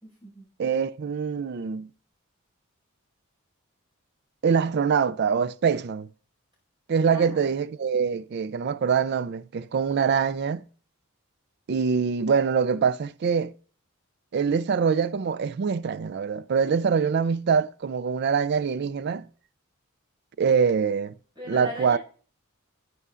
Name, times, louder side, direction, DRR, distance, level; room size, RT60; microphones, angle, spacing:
voice 1, 0.0-0.5 7.1-7.5 21.4-22.0, left 1 dB, 20° right, 5.3 m, -40 dB
voice 2, 0.6-1.9 4.4-6.1 6.9-10.6 11.7-13.5 14.3-19.3 20.4-21.2 21.5-22.0, right 6 dB, 50° right, 0.3 m, -24 dB
11.0 x 9.2 x 2.5 m
head